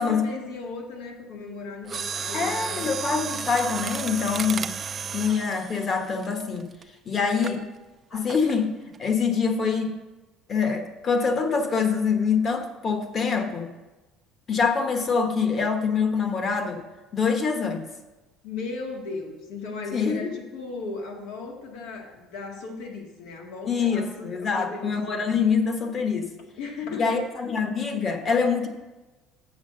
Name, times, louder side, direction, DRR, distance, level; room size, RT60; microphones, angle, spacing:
voice 1, 0.0-2.9 7.1-7.6 18.4-24.9 26.6-27.2, left 4 dB, 85° left, 0 dB, 2.0 m, -36 dB
Mechanisms, 1.8-6.8 7.4-7.6 8.3-8.6 8.9-9.0, right 6 dB, 30° right, 0.4 m, -33 dB
voice 2, 2.3-4.7 5.1-6.7 7.0-7.6 8.1-9.9 10.5-13.7 14.5-16.8 17.1-17.8 19.9-20.3 23.7-26.3 26.9-28.7, left 5 dB, 35° left, 6 dB, 1.1 m, -25 dB
7.2 x 6.2 x 6.5 m, 1.1 s
cardioid pair, 135°, 0 cm